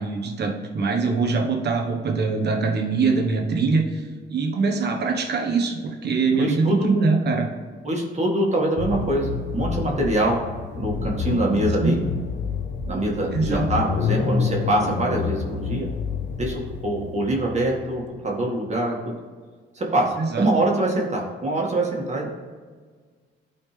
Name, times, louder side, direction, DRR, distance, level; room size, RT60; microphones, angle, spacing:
voice 1, 0.0-7.5 11.8-12.1 13.3-13.7 20.2-20.5, right 4 dB, 55° right, 2 dB, 1.3 m, -23 dB
voice 2, 6.3-7.0 7.8-10.4 10.7-12.0 12.9-15.9 16.4-19.1 19.8-22.3, right 1 dB, 35° right, -1 dB, 2.0 m, -24 dB
sound 1, 8.8-18.2, left 6 dB, 60° left, 0.8 m, -28 dB
12.0 x 4.3 x 3.4 m, 1.5 s
cardioid pair, 90°, 20 cm